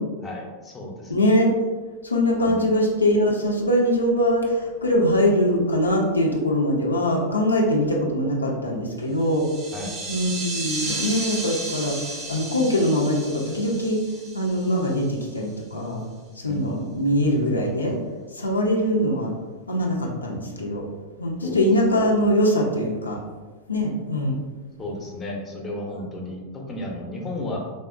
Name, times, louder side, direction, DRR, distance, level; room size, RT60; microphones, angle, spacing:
voice 1, 0.2-1.1 2.4-2.7 9.7-10.0 16.4-16.8 21.4-21.6 24.8-27.6, left 1 dB, 20° left, -1 dB, 0.6 m, -33 dB
voice 2, 1.1-1.5 2.0-9.4 10.1-14.0 14.3-16.0 16.4-18.0 18.3-19.3 19.7-20.8 21.2-23.2 23.7-24.4 26.0-26.1, equal, 80° left, -2 dB, 0.4 m, -22 dB
sound 1, 9.2-15.3, right 2 dB, 35° right, 0.5 m, -33 dB
3.6 x 2.0 x 2.4 m, 1.3 s
figure-of-eight pair, 90°, 0 cm